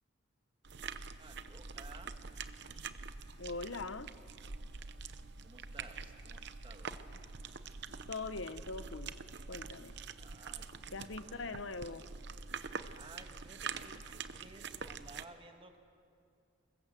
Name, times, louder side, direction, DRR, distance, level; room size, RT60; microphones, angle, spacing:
sound 1, 0.6-15.2, right 5 dB, 60° right, 0.8 m, -45 dB
voice 1, 1.2-2.2 4.7-4.9 5.4-7.0 10.2-11.5 12.9-15.8, right 2 dB, 25° right, 5 dB, 1.8 m, -56 dB
voice 2, 3.4-4.1 8.1-9.1 9.5-9.9 10.9-12.0, left 3 dB, 80° left, 13 dB, 0.9 m, -41 dB
26.5 x 22.0 x 7.6 m, 2.4 s
head